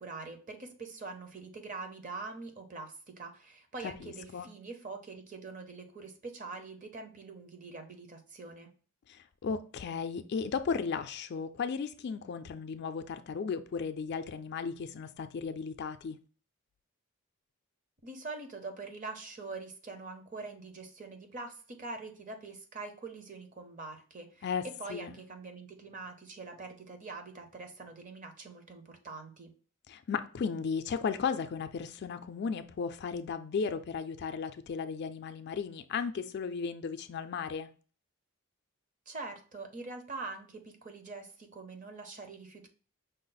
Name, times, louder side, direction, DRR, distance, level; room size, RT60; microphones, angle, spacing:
voice 1, 0.0-8.7 18.0-29.5 39.1-42.7, right 3 dB, 35° right, 0.7 m, -44 dB
voice 2, 4.0-4.5 9.1-16.2 24.4-24.6 24.9-25.1 29.9-37.7, left 5 dB, 50° left, 0.3 m, -35 dB
5.4 x 2.0 x 3.9 m
head